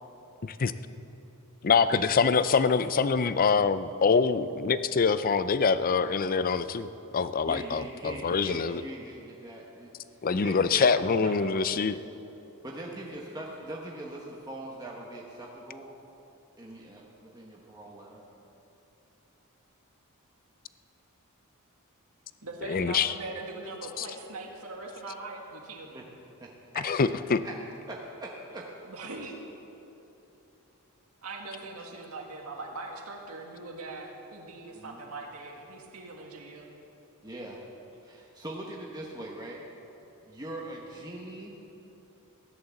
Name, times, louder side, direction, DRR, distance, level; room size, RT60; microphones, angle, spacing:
voice 1, 1.6-6.9 7.1-8.8 10.2-12.0 22.7-23.1 24.0-24.1 26.8-27.4, left 5 dB, 40° left, 13 dB, 0.5 m, -25 dB
voice 2, 7.5-9.9 10.4-11.5 12.6-15.9 16.6-18.2 25.9-26.0 26.4-26.9 27.4-27.5 27.9-28.7 34.7-35.0 37.2-37.6 38.0-39.6 40.2-41.6, right 1 dB, 20° right, -3 dB, 1.3 m, -41 dB
voice 3, 22.4-26.0 28.9-29.4 31.2-36.7, right 3 dB, 80° right, 0 dB, 2.0 m, -41 dB
15.5 x 11.0 x 7.1 m, 3.0 s
head